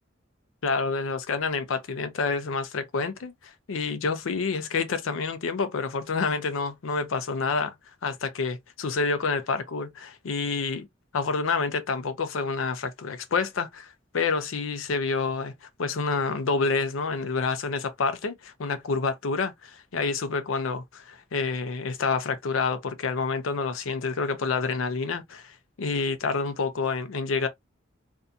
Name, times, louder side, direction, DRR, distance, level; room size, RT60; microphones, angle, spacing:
voice 1, 0.6-7.7 8.0-10.9 11.1-27.5, left 4 dB, 85° left, 0.5 m, -28 dB
2.6 x 2.2 x 2.6 m
head